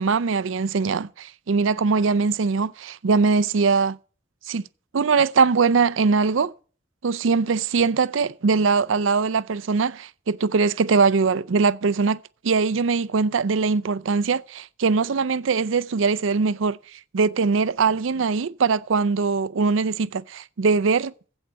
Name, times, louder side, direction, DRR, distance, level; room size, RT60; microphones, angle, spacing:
voice 1, 0.0-4.0 4.5-4.6 4.9-6.5 7.0-16.8 17.1-21.1, right 4 dB, 75° right, 0.5 m, -21 dB
8.0 x 7.9 x 8.6 m
head